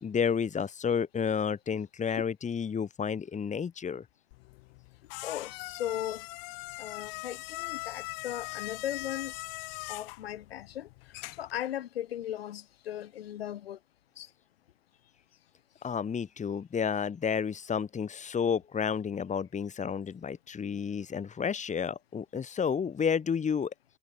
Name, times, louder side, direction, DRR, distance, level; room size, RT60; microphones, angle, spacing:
voice 1, 0.0-4.0 15.8-23.7, left 7 dB, 25° left, 2.1 m, -31 dB
sound 1, 4.3-11.6, left 28 dB, 70° left, 3.9 m, -41 dB
voice 2, 5.2-6.3 6.8-9.3 9.9-10.9 11.4-13.8 14.2-14.3, left 11 dB, 85° left, 3.3 m, -37 dB
hypercardioid pair, 90°, 29 cm